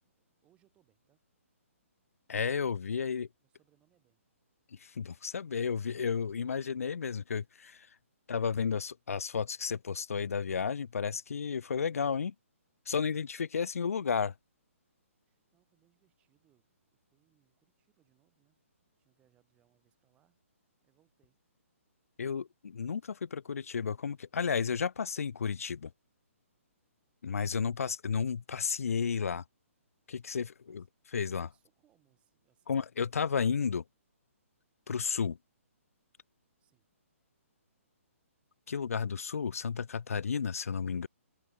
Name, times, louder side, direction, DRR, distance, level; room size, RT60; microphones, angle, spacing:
voice 1, 0.2-1.2 3.4-4.2 15.2-20.4 20.8-21.4 30.7-30.9 31.2-32.8 36.6-36.9, right 13 dB, 15° right, 6.6 m, -73 dB
voice 2, 2.3-3.3 4.8-7.9 8.3-12.3 12.9-14.3 22.2-25.9 27.2-29.4 30.1-30.8 31.1-31.5 32.7-33.8 34.9-35.4 38.7-41.1, left 6 dB, 85° left, 0.6 m, -32 dB
hypercardioid pair, 165°, 8 cm